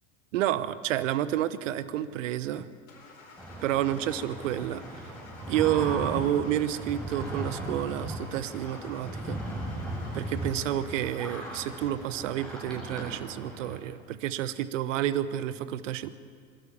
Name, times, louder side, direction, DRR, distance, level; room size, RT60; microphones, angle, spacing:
voice 1, 0.3-2.7 3.6-5.1 5.5-9.4 10.1-16.1, right 12 dB, 65° right, 16 dB, 1.1 m, -30 dB
Car / Engine starting, 2.9-12.1, left 3 dB, 80° left, 4.4 m, -51 dB
sound 1, 3.4-13.8, right 1 dB, ahead, 6.9 m, -37 dB
26.0 x 13.0 x 8.5 m, 2.1 s
figure-of-eight pair, 85°, 41 cm